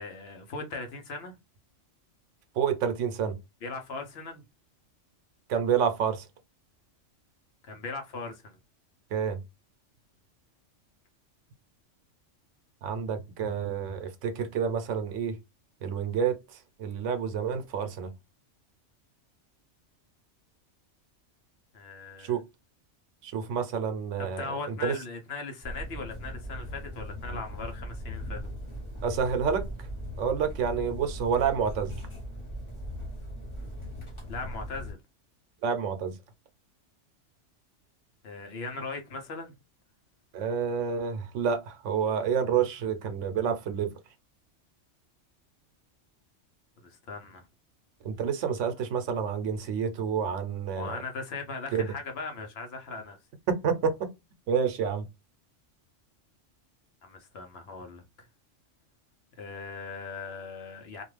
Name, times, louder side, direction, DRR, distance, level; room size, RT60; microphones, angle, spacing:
voice 1, 0.0-1.3 3.6-4.4 7.7-8.6 21.7-22.4 24.2-28.4 34.3-35.0 38.2-39.5 46.8-47.5 50.7-53.2 57.0-58.0 59.4-61.0, left 3 dB, 60° left, 0.9 m, -39 dB
voice 2, 2.6-3.4 5.5-6.2 9.1-9.4 12.8-15.4 15.8-16.4 16.8-18.1 22.2-22.4 23.2-24.4 24.8-24.9 29.0-29.6 30.2-31.9 35.6-36.1 40.3-43.9 48.0-51.0 51.7-51.9 53.5-54.1 54.5-55.0, right 7 dB, 80° right, 0.9 m, -28 dB
sound 1, 25.6-34.9, equal, 25° left, 0.9 m, -39 dB
2.4 x 2.3 x 3.1 m
omnidirectional pair, 1.3 m